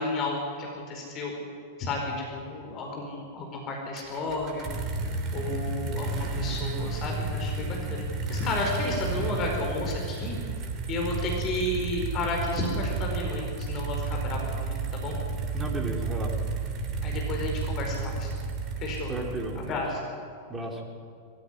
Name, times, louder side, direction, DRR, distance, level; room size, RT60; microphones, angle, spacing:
voice 1, 0.0-1.3 1.8-4.6 5.3-10.3 10.9-15.1 17.0-18.3 18.8-19.1 19.5-20.0, left 2 dB, 35° left, 0 dB, 5.0 m, -32 dB
sound 1, 4.0-19.9, right 4 dB, 35° right, 3.2 m, -32 dB
voice 2, 15.5-16.3 19.1-19.8 20.5-20.8, right 1 dB, 15° right, 1 dB, 4.2 m, -33 dB
21.0 x 16.0 x 9.9 m, 2.3 s
figure-of-eight pair, 90°, 0 cm